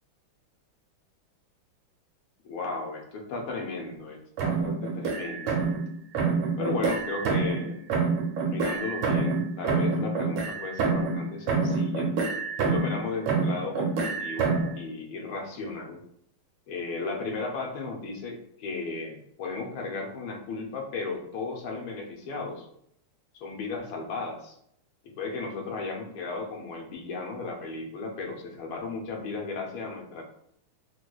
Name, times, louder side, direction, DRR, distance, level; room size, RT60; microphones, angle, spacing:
voice 1, 2.4-5.6 6.6-7.9 8.4-12.1 12.6-16.0 16.7-22.7 23.3-24.6 25.0-30.2, left 3 dB, 80° left, 1 dB, 1.5 m, -35 dB
sound 1, 4.4-5.9 6.2-7.7 7.9-11.2 11.5-13.0 13.3-14.7, right 4 dB, 85° right, 1.6 m, -27 dB
4.4 x 2.4 x 2.2 m, 0.72 s
omnidirectional pair, 2.4 m